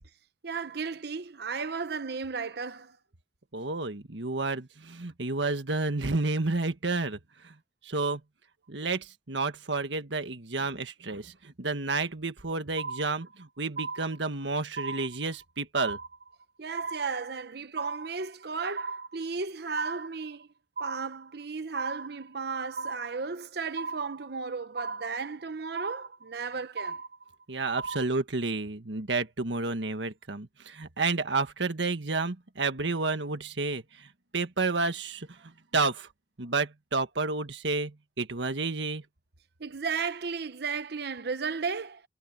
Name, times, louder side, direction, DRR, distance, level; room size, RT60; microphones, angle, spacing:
voice 1, 0.4-3.0 16.6-20.5 20.8-27.0 39.6-42.0, right 5 dB, 60° right, 0.8 m, -34 dB
voice 2, 3.5-7.5 7.8-8.2 8.7-16.0 27.5-34.1 34.3-36.1 36.4-39.0, right 3 dB, 80° right, 1.6 m, -31 dB
sound 1, 12.8-13.4 13.8-14.4 14.8-15.4 15.8-16.4 16.8-17.4 17.8-18.4 18.8-19.4 19.8-20.4 20.8-21.4 21.8-22.4 22.8-23.4 23.8-24.4 24.8-25.4 25.8-26.4 26.8-27.4 27.8-28.1, right 4 dB, 45° right, 1.1 m, -37 dB
head